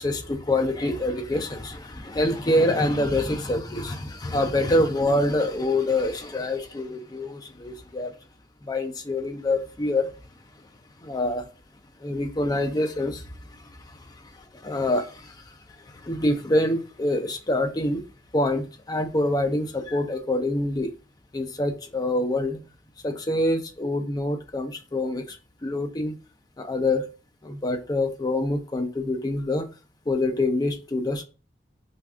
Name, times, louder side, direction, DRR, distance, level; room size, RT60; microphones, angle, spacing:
voice 1, 0.0-8.1 8.6-10.1 11.0-11.4 12.0-13.2 13.9-14.3 14.6-15.4 16.0-18.0 18.3-20.9 21.3-22.6 23.0-25.4 25.6-26.2 26.6-27.0 27.4-29.7 30.1-31.2, left 1 dB, 25° left, 0.5 m, -25 dB
2.6 x 2.4 x 3.3 m
head